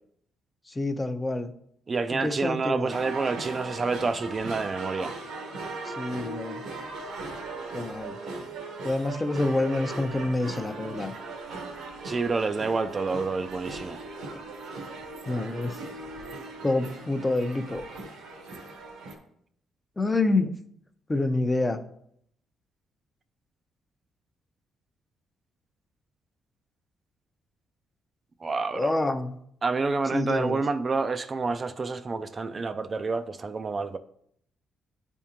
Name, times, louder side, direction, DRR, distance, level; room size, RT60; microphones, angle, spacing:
voice 1, 0.7-1.5 2.1-3.0 5.8-6.6 7.7-8.2 8.8-11.1 15.3-15.8 16.6-17.8 20.0-20.6 21.1-21.8 28.7-29.4 30.1-30.6, left 2 dB, 20° left, 8 dB, 0.5 m, -27 dB
voice 2, 1.9-5.1 12.0-14.0 28.4-28.9 29.6-34.0, right 4 dB, 35° right, 10 dB, 0.3 m, -28 dB
sound 1, 2.9-19.1, right 3 dB, 85° right, 1.1 m, -39 dB
10.0 x 3.6 x 2.8 m, 0.69 s
cardioid pair, 90°, 0 cm